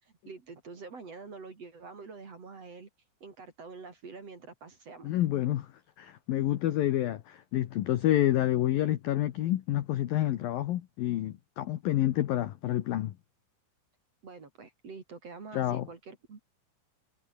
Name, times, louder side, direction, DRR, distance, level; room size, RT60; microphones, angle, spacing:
voice 1, 0.0-2.9 3.2-5.1 14.2-16.4, right 4 dB, 35° right, 3.7 m, -46 dB
voice 2, 5.0-5.7 6.0-13.2 15.5-15.9, left 13 dB, 75° left, 2.1 m, -28 dB
omnidirectional pair, 5.7 m